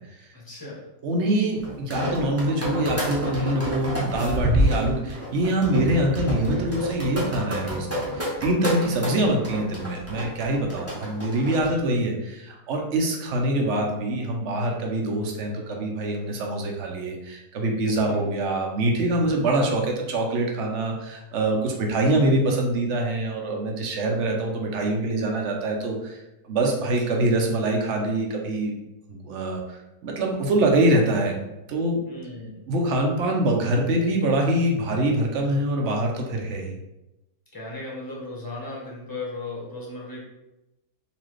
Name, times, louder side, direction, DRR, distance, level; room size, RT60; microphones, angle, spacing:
voice 1, 0.3-0.9 11.7-11.8 18.0-18.3 21.6-21.9 32.1-32.7 37.5-40.2, left 2 dB, 15° left, -4 dB, 0.8 m, -37 dB
voice 2, 1.0-28.7 29.1-32.0 32.7-36.7, right 1 dB, 55° right, 1 dB, 0.8 m, -24 dB
sound 1, 1.6-11.7, equal, 15° right, 0.6 m, -28 dB
4.1 x 2.9 x 3.1 m, 0.94 s
omnidirectional pair, 1.9 m